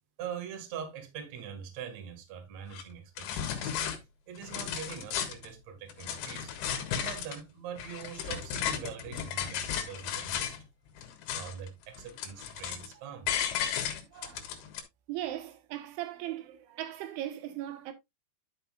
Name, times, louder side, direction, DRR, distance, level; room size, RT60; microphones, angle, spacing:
voice 1, 0.2-3.8 4.3-6.5 6.9-10.6 11.3-13.3, right 7 dB, 50° right, 2.3 m, -43 dB
sound 1, 2.7-2.8 3.2-4.0 4.4-5.5 5.9-7.4 7.8-10.6 11.0-11.7 11.9-12.9 13.3-14.8, left 9 dB, 75° left, 3.5 m, -34 dB
voice 2, 14.1-14.5 15.1-17.9, right 13 dB, 80° right, 3.5 m, -38 dB
11.5 x 6.6 x 2.4 m
omnidirectional pair, 5.4 m